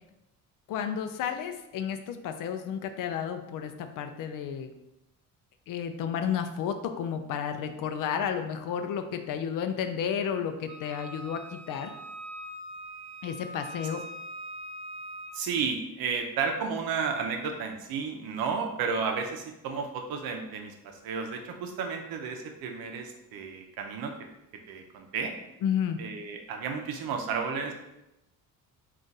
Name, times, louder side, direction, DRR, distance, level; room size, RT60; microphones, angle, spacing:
voice 1, 0.7-4.7 5.7-11.9 13.2-14.0 25.6-26.0, left 8 dB, 65° left, 7 dB, 0.5 m, -32 dB
Wind instrument woodwind instrument, 10.7-15.4, right 1 dB, 50° right, 0.9 m, -42 dB
voice 2, 15.3-20.7 21.0-24.1 24.7-25.3 26.0-27.7, right 5 dB, 80° right, 4 dB, 0.7 m, -32 dB
3.7 x 2.5 x 4.0 m, 0.90 s
cardioid pair, 140°, 36 cm